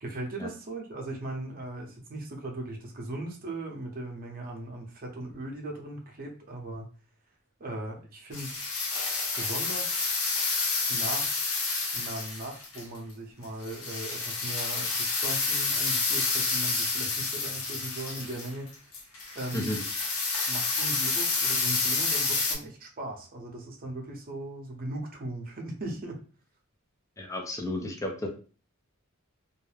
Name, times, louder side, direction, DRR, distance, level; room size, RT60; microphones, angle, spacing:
voice 1, 0.0-6.9 7.6-8.7 9.4-10.1 10.9-11.5 11.9-18.7 19.3-19.7 20.5-26.2, right 2 dB, 45° right, 1 dB, 0.7 m, -38 dB
sound 1, 8.3-12.8 13.6-22.5, left 4 dB, 85° left, 0.7 m, -29 dB
voice 2, 27.2-28.3, left 1 dB, 15° left, 1 dB, 0.4 m, -32 dB
2.3 x 2.0 x 3.2 m, 0.38 s
head